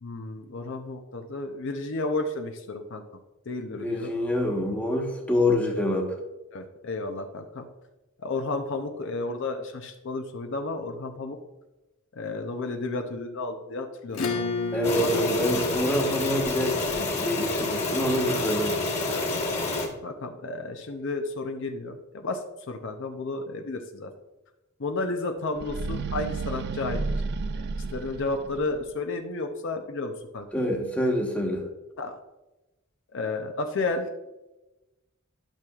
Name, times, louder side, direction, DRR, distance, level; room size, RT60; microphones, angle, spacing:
voice 1, 0.0-3.0 3.5-4.1 6.5-7.7 8.2-11.4 12.1-14.5 15.0-15.3 18.2-18.5 19.1-19.7 20.0-24.1 24.8-27.0 27.5-30.5 32.0-32.2 33.1-34.1, left 3 dB, 60° left, 5 dB, 0.6 m, -32 dB
voice 2, 3.7-6.1 14.7-18.8 30.5-31.6, left 1 dB, 5° left, 0 dB, 1.2 m, -26 dB
Acoustic guitar / Strum, 14.1-19.1, left 4 dB, 85° left, 1.2 m, -33 dB
sound 1, 14.8-19.9, left 2 dB, 30° left, 1.5 m, -28 dB
sound 2, 25.5-28.8, right 3 dB, 50° right, 0.4 m, -32 dB
11.5 x 6.0 x 2.4 m, 1.0 s
head